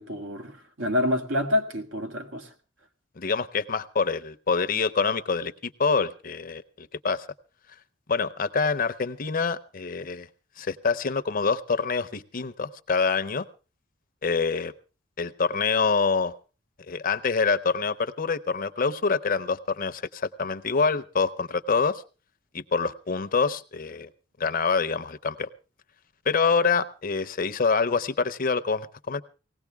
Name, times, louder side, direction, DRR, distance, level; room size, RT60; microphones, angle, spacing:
voice 1, 0.0-2.5, left 1 dB, 80° right, 1.7 m, -27 dB
voice 2, 3.2-7.3 8.1-10.3 10.6-13.5 14.2-14.7 15.2-16.3 16.9-22.0 22.5-24.1 24.4-25.5 26.3-29.2, left 5 dB, 45° left, 0.7 m, -26 dB
19.0 x 16.5 x 3.4 m
head